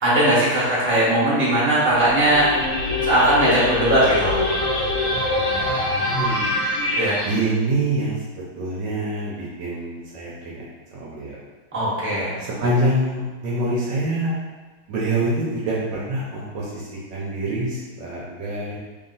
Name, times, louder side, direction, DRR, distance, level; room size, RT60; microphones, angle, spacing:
voice 1, 0.0-2.5 3.0-4.4 6.0-6.1 7.0-7.2 11.7-12.4, right 1 dB, 10° right, -9 dB, 1.0 m, -19 dB
sound 1, 1.9-7.4, left 2 dB, 65° left, 1.6 m, -24 dB
voice 2, 5.5-6.4 7.2-8.2 8.6-10.6 10.9-11.4 12.4-14.3 14.9-18.8, right 1 dB, 65° right, -6 dB, 1.3 m, -25 dB
3.5 x 2.8 x 4.0 m, 1.3 s
omnidirectional pair, 2.3 m